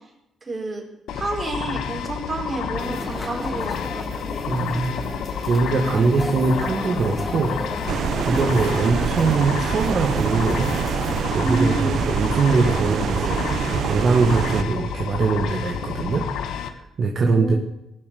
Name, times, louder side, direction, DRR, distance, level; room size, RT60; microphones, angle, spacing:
voice 1, 0.4-0.8 1.1-4.2 8.3-8.5 11.4-12.0 17.1-17.6, right 2 dB, 30° right, 0 dB, 4.8 m, -29 dB
sound 1, 1.1-16.7, left 8 dB, 80° left, 1.3 m, -30 dB
sound 2, 2.8-11.3, left 1 dB, 15° left, 2.1 m, -34 dB
voice 2, 4.5-4.9 5.4-10.8 11.3-17.5, right 4 dB, 50° right, 2 dB, 1.7 m, -22 dB
sound 3, 7.9-14.6, right 8 dB, 65° right, 0.8 m, -25 dB
20.5 x 7.6 x 7.0 m, 0.85 s
cardioid pair, 110°, 0 cm